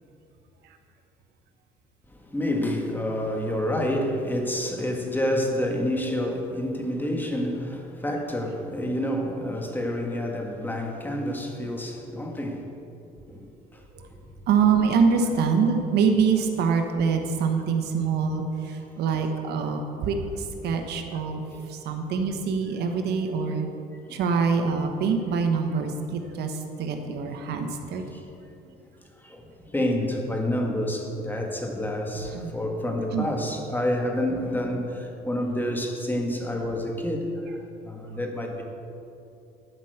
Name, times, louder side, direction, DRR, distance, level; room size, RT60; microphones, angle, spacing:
voice 1, 2.1-12.7 13.3-13.8 14.1-14.2 19.6-19.7 21.5-21.6 24.1-24.2 27.6-27.7 28.1-28.2 28.7-28.8 29.2-38.6, left 1 dB, 10° left, 2 dB, 1.7 m, -29 dB
voice 2, 14.5-23.7 24.1-28.0 32.3-32.5 33.1-33.3, right 5 dB, 75° right, 5 dB, 1.2 m, -25 dB
12.5 x 5.8 x 7.9 m, 2.7 s
cardioid pair, 110°, 17 cm